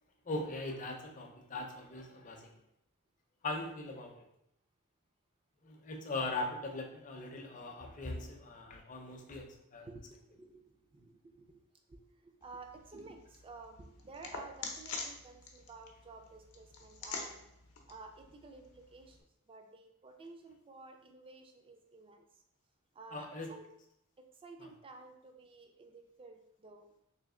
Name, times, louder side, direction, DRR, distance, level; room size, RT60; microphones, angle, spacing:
voice 1, 0.2-2.6 3.4-4.1 5.6-9.9 23.1-23.5 24.6-24.7, left 2 dB, 35° left, 3 dB, 0.5 m, -40 dB
voice 2, 9.9-11.6 11.9-17.5 17.9-19.2 19.5-22.3 22.9-23.7 24.4-26.9, right 3 dB, 25° right, 5 dB, 0.4 m, -53 dB
sound 1, 12.4-19.2, left 4 dB, 85° left, 0.6 m, -47 dB
3.2 x 3.0 x 3.7 m, 0.79 s
head